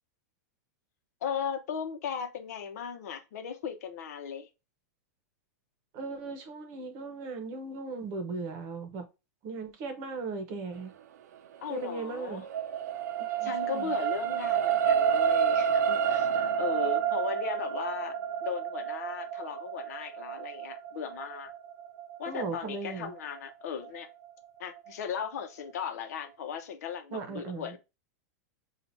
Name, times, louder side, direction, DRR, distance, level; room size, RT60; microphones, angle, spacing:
voice 1, 1.2-4.5 11.6-12.5 13.4-16.3 16.6-21.5 22.2-24.1 24.6-27.8, left 7 dB, 70° left, 0.9 m, -37 dB
voice 2, 5.9-9.1 9.4-10.9 11.7-12.4 13.2-13.9 22.3-23.1 27.1-27.7, right 4 dB, 35° right, 0.9 m, -37 dB
sound 1, 11.7-24.2 24.8-24.9, right 8 dB, 90° right, 0.6 m, -30 dB
5.7 x 2.4 x 2.7 m
supercardioid pair, 170°, 9 cm